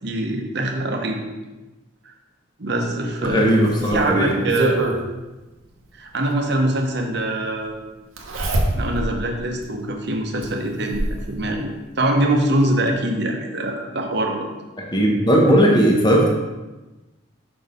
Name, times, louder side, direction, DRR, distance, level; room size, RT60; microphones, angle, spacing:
voice 1, 0.0-1.2 2.0-2.1 2.6-4.8 5.9-7.8 8.8-11.7 12.0-14.5, right 1 dB, 55° right, 2 dB, 0.9 m, -23 dB
voice 2, 3.2-4.3 14.8-16.3, equal, 20° left, -1 dB, 1.0 m, -17 dB
Zipper (clothing), 3.2-5.0 6.4-6.5 8.2-9.1 9.6-9.7 10.4-11.2 12.4-12.5 12.9-13.0, right 2 dB, 80° right, 1.0 m, -24 dB
5.8 x 4.2 x 5.1 m, 1.1 s
head